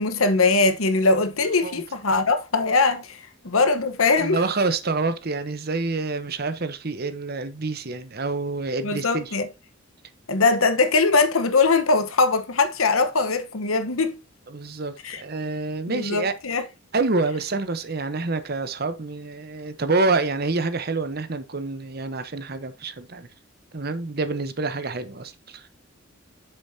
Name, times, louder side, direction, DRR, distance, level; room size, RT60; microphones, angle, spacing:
voice 1, 0.0-4.4 8.8-9.5 10.3-14.2 15.0-15.2 15.9-16.6, left 3 dB, 85° left, 1.2 m, -21 dB
voice 2, 4.1-9.4 14.5-16.3 16.9-23.3 23.7-25.7, right 3 dB, 50° right, 0.9 m, -27 dB
8.1 x 6.6 x 2.8 m
head